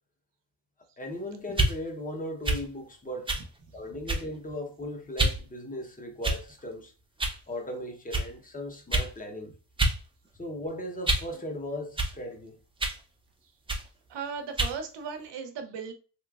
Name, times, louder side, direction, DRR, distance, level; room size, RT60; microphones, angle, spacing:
voice 1, 1.0-3.4 3.7-6.9 7.5-9.5 10.4-12.6, left 1 dB, 20° left, 0.8 m, -37 dB
sound 1, 1.5-1.8 2.4-2.7 3.3-3.5 4.1-4.4 5.2-5.4 6.2-6.6 7.2-7.4 8.1-8.3 8.9-9.1 9.8-10.0 10.3-11.3 12.0-12.2 12.8-13.0 13.7-13.9 14.6-14.8, right 2 dB, 10° right, 0.6 m, -27 dB
voice 2, 14.1-15.9, right 6 dB, 80° right, 0.8 m, -37 dB
3.0 x 3.0 x 2.3 m
cardioid pair, 90°, 42 cm